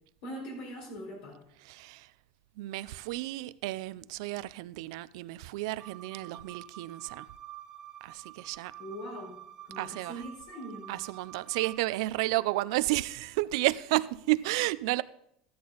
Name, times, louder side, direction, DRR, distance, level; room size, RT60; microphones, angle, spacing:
voice 1, 0.2-1.4 8.8-9.3 9.6-10.9, equal, 65° left, 4.5 m, -41 dB
voice 2, 1.6-2.1 2.6-7.3 8.0-8.7 9.8-10.2 10.9-15.0, right 19 dB, 80° right, 0.5 m, -32 dB
sound 1, 5.8-11.8, right 12 dB, 25° right, 1.6 m, -48 dB
13.5 x 10.5 x 4.0 m
cardioid pair, 150°, 3 cm